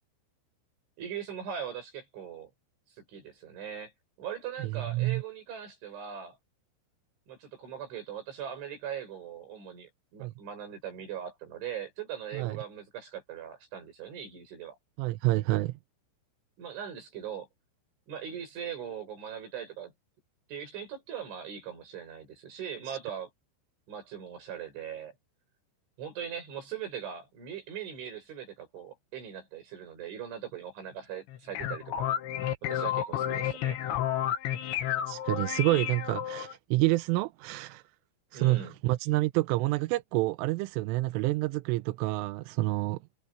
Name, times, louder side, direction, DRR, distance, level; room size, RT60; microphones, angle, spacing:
voice 1, 1.0-2.5 3.0-3.9 4.2-6.4 7.3-14.8 16.6-17.5 18.1-19.9 20.5-23.3 23.9-25.2 26.0-32.1 32.6-33.8 38.3-38.8, right 8 dB, 70° right, 10.0 m, -40 dB
voice 2, 4.6-5.2 10.2-10.3 12.3-12.5 15.0-15.8 22.9-23.0 35.1-37.8 38.3-43.0, right 20 dB, 85° right, 3.2 m, -28 dB
sound 1, 31.3-36.5, left 11 dB, 70° left, 4.0 m, -31 dB
omnidirectional pair, 5.7 m